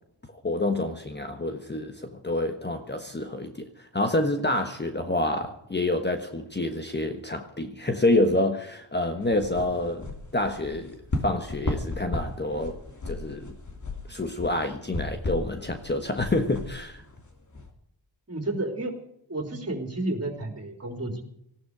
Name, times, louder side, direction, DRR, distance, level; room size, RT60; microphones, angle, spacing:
voice 1, 0.4-12.8 13.1-13.5 14.1-17.0, left 1 dB, 20° left, 1.4 m, -28 dB
sound 1, 9.2-17.7, left 2 dB, 40° left, 2.9 m, -35 dB
voice 2, 18.3-18.9 19.3-21.2, right 2 dB, 30° right, 4.1 m, -31 dB
18.5 x 15.0 x 5.0 m
wide cardioid pair, 115°, 47 cm